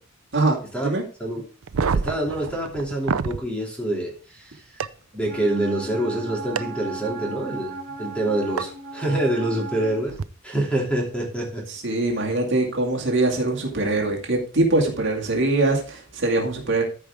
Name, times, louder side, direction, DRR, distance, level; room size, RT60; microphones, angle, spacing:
voice 1, 0.3-1.0 11.7-16.8, right 2 dB, 60° right, 0 dB, 2.3 m, -23 dB
sound 1, 1.6-3.4 4.8-4.9 6.6-6.7 8.6-8.7 10.1-10.2, right 5 dB, 90° right, 0.5 m, -26 dB
voice 2, 1.9-4.6 5.1-10.2 10.4-11.6, right 1 dB, 5° left, -2 dB, 2.9 m, -26 dB
Wind instrument woodwind instrument, 5.2-10.0, right 3 dB, 35° right, 3.1 m, -36 dB
14.0 x 4.9 x 3.6 m, 0.38 s
head